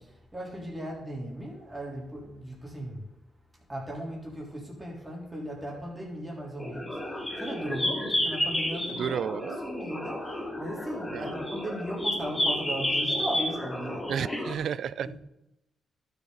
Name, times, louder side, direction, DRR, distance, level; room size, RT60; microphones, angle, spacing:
voice 1, 0.0-3.0 3.7-9.3 9.6-14.1, right 1 dB, 15° right, 3.5 m, -37 dB
sound 1, 6.6-14.5, left 1 dB, 15° left, 2.3 m, -31 dB
voice 2, 8.9-9.6 11.1-11.3 14.1-15.1, right 8 dB, 70° right, 0.3 m, -32 dB
12.0 x 7.0 x 4.0 m
cardioid pair, 85°, 0 cm